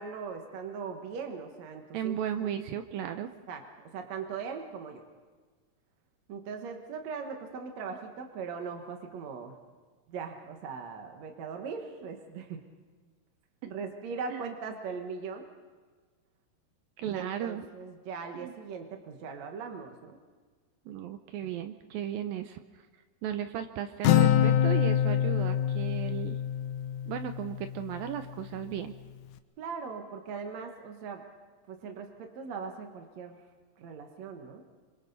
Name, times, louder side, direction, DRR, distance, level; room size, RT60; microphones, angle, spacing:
voice 1, 0.0-2.5 3.5-3.6 3.9-5.0 6.3-9.5 10.1-12.6 13.6-15.5 17.0-20.2 29.6-31.3 31.7-33.4 33.8-34.6, right 5 dB, 60° right, 4 dB, 2.0 m, -40 dB
voice 2, 1.9-3.3 14.3-14.5 17.0-17.7 18.3-18.5 20.9-22.6 23.2-26.4 27.1-28.9, right 10 dB, 75° right, 8 dB, 2.2 m, -35 dB
Acoustic guitar, 24.0-27.7, left 10 dB, 80° left, 2.0 m, -25 dB
27.0 x 25.0 x 4.1 m, 1.5 s
omnidirectional pair, 4.7 m